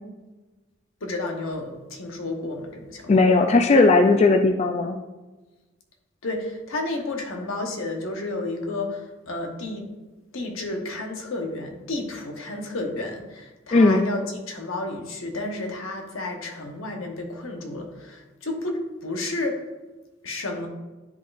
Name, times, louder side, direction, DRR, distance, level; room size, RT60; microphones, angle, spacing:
voice 1, 1.0-3.1 6.2-9.9 10.3-19.6 20.2-20.7, left 2 dB, 85° left, 2 dB, 1.1 m, -31 dB
voice 2, 3.1-5.0 13.7-14.0, left 3 dB, 35° left, 6 dB, 0.3 m, -17 dB
10.5 x 3.9 x 2.5 m, 1.2 s
head